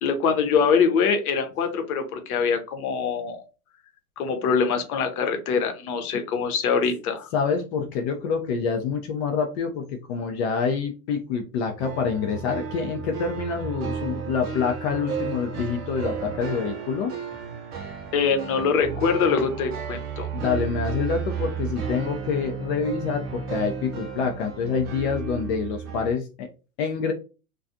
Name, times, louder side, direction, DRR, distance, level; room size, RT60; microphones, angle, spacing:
voice 1, 0.0-3.4 4.2-7.3 18.1-20.3, left 6 dB, 70° left, 6 dB, 0.8 m, -23 dB
voice 2, 7.3-17.1 20.3-26.5 26.8-27.1, left 6 dB, 45° left, 4 dB, 0.5 m, -27 dB
sound 1, 11.7-26.1, right 6 dB, 30° right, 0.5 m, -33 dB
2.3 x 2.3 x 2.5 m, 0.33 s
hypercardioid pair, 105°, 46 cm